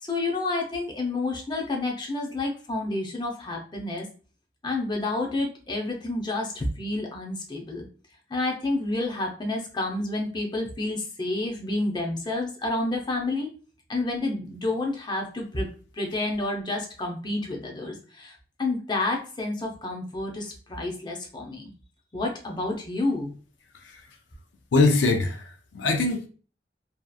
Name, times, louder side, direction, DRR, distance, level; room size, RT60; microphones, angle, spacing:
voice 1, 0.0-4.1 4.6-7.9 8.3-13.5 13.9-15.7 15.9-21.6 22.1-23.3, left 2 dB, 25° left, 0.6 m, -29 dB
voice 2, 23.7-24.1 24.7-26.3, left 3 dB, 80° left, 0.4 m, -23 dB
2.8 x 2.4 x 2.2 m
head